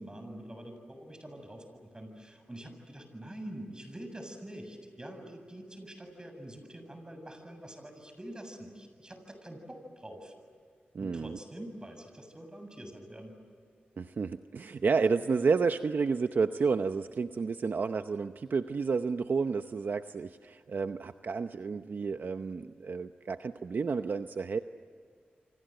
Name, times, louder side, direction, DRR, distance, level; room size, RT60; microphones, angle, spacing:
voice 1, 0.0-10.3 11.0-13.4, right 1 dB, 20° right, 6 dB, 7.4 m, -45 dB
voice 2, 10.9-11.4 14.0-24.6, right 5 dB, 60° right, 9 dB, 0.8 m, -31 dB
29.0 x 25.5 x 7.9 m, 2.1 s
cardioid pair, 65°, 4 cm